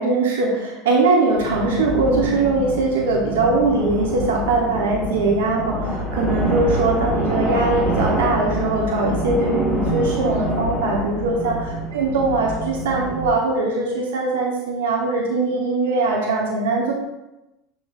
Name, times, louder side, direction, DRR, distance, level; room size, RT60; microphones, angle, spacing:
voice 1, 0.0-16.9, right 3 dB, 75° right, -1 dB, 0.8 m, -21 dB
sound 1, 1.3-13.3, equal, 15° right, 1.0 m, -26 dB
6.2 x 3.2 x 2.4 m, 0.97 s
hypercardioid pair, 85°, 0 cm